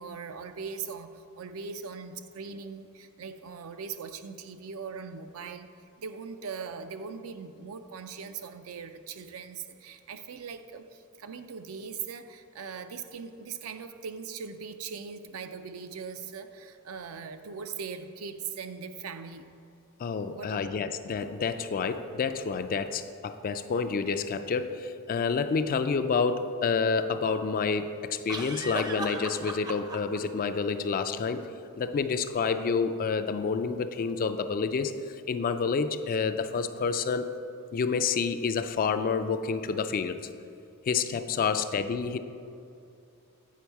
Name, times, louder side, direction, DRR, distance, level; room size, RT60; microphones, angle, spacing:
voice 1, 0.0-5.7 6.0-19.5 20.3-20.9, right 5 dB, 70° right, 9 dB, 0.5 m, -40 dB
voice 2, 20.0-31.5 31.8-34.9 35.3-37.3 37.7-40.3 40.8-42.2, left 5 dB, 40° left, 10 dB, 0.3 m, -29 dB
sound 1, 25.3-25.4 28.3-30.2, right 2 dB, 20° right, 0.5 m, -36 dB
8.4 x 5.3 x 4.6 m, 2.5 s
head